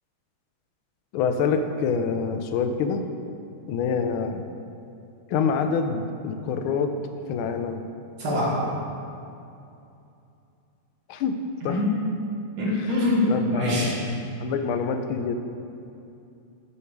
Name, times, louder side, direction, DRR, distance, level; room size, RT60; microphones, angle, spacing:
voice 1, 1.1-3.0 3.7-4.4 5.3-6.9 7.3-7.8 11.1-11.4 11.6-11.8 12.7-12.9 13.3-14.0 14.4-15.3, left 5 dB, 85° left, 7 dB, 1.5 m, -26 dB
voice 2, 8.2-8.6 11.6-12.0 12.6-13.9, left 1 dB, 80° right, -5 dB, 2.5 m, -24 dB
8.6 x 5.8 x 4.7 m, 2.7 s
omnidirectional pair, 2.2 m